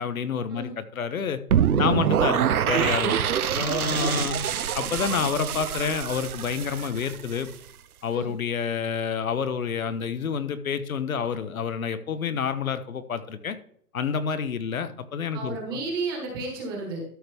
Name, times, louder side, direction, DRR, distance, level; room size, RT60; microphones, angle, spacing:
voice 1, 0.0-1.4 1.8-2.4 2.7-4.4 4.7-7.5 8.0-13.6 13.9-15.8, left 6 dB, 65° left, 11 dB, 1.0 m, -28 dB
sound 1, 1.5-7.5, right 8 dB, 70° right, 0.8 m, -25 dB
voice 2, 3.8-4.2 5.0-5.2 8.1-8.3 15.3-17.0, right 3 dB, 15° right, 0 dB, 1.5 m, -33 dB
12.5 x 5.9 x 3.4 m, 0.62 s
hypercardioid pair, 175°, 45 cm